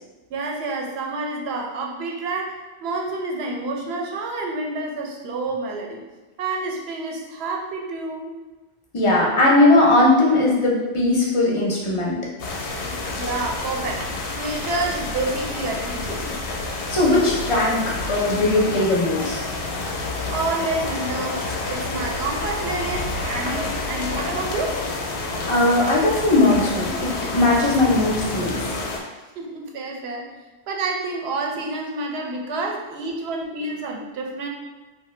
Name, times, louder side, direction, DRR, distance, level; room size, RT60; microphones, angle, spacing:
voice 1, 0.3-6.0 6.4-8.4 12.8-16.4 20.3-24.8 29.4-30.3 30.7-34.5, right 3 dB, 70° right, 1 dB, 0.8 m, -29 dB
voice 2, 8.9-12.2 16.9-17.8 18.1-19.5 25.2-28.8, left 2 dB, 40° left, -4 dB, 0.5 m, -19 dB
sound 1, 12.4-29.0, left 2 dB, 85° left, 0.9 m, -29 dB
2.8 x 2.1 x 3.1 m, 1.2 s
omnidirectional pair, 1.1 m